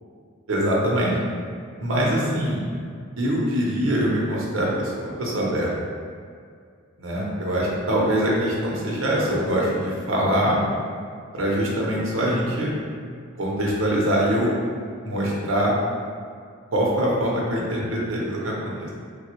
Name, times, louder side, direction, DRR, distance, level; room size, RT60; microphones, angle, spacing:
voice 1, 0.5-1.1 1.8-2.6 3.2-5.7 7.0-10.6 11.3-12.7 13.4-14.5 15.0-15.8 16.7-18.9, equal, 70° right, -4 dB, 0.7 m, -23 dB
3.3 x 2.3 x 2.9 m, 2.1 s
head